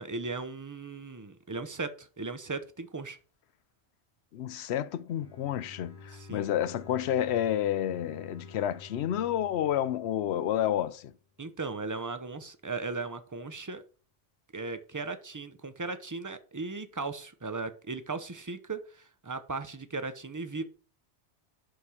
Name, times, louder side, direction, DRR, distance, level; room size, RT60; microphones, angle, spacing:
voice 1, 0.0-3.2 6.1-6.5 11.4-13.8 14.5-20.6, right 3 dB, 20° right, 0.6 m, -37 dB
voice 2, 4.3-11.1, left 11 dB, 70° left, 0.8 m, -30 dB
Bowed string instrument, 5.1-11.0, left 4 dB, 5° right, 4.7 m, -50 dB
8.4 x 5.9 x 4.9 m
omnidirectional pair, 1.2 m